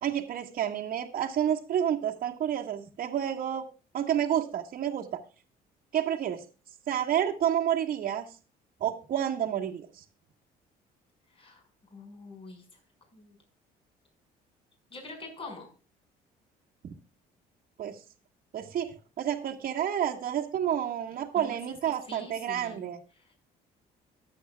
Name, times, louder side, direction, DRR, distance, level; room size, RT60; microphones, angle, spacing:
voice 1, 0.0-3.7 3.9-5.1 5.9-6.4 6.9-8.3 8.8-10.0 17.8-18.0 18.5-23.0, right 10 dB, 55° right, -3 dB, 1.8 m, -29 dB
voice 2, 11.3-11.6 11.9-12.8 13.1-13.4 14.9-15.7 21.3-21.8 22.1-22.8 23.2-23.3, left 2 dB, 35° left, 3 dB, 5.6 m, -45 dB
23.5 x 8.4 x 2.3 m, 0.34 s
cardioid pair, 110°, 17 cm